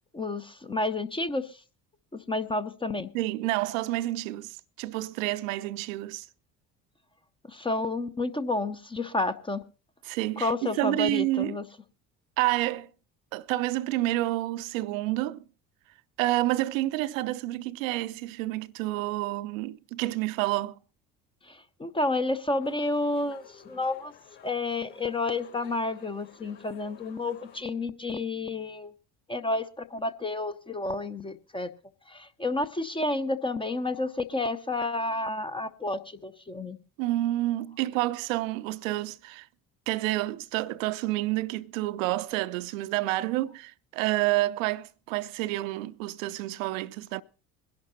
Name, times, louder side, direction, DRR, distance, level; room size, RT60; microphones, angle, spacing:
voice 1, 0.1-1.5 2.1-3.1 7.5-9.6 10.4-11.6 21.5-24.1 24.4-28.9 29.3-31.7 32.1-36.8, left 2 dB, 10° left, 0.5 m, -30 dB
voice 2, 3.1-6.3 10.0-11.6 12.4-12.9 13.3-15.4 16.2-20.8 37.0-39.5 39.9-47.2, right 17 dB, 55° right, 0.5 m, -29 dB
sound 1, 22.6-27.6, left 8 dB, 55° left, 5.3 m, -54 dB
22.0 x 11.0 x 2.7 m
figure-of-eight pair, 55°, 48 cm